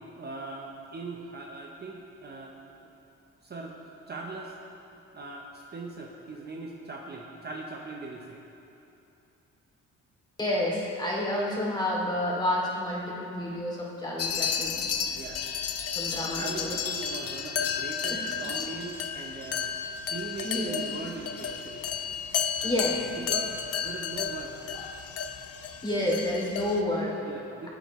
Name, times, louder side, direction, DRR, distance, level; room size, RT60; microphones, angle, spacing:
voice 1, 0.2-2.5 3.4-3.7 4.1-4.5 5.1-8.4 15.1-15.4 16.3-19.7 20.1-21.8 22.6-22.7 23.3-24.5 27.2-27.7, right 3 dB, 35° right, -1 dB, 1.0 m, -40 dB
voice 2, 10.4-14.9 15.9-16.7 18.1-18.2 20.4-20.8 22.6-23.0 25.8-27.2, left 1 dB, 15° left, -4 dB, 2.8 m, -29 dB
sound 1, 14.2-26.8, left 7 dB, 55° left, 0.7 m, -32 dB
18.0 x 7.8 x 3.2 m, 2.9 s
cardioid pair, 90°, 30 cm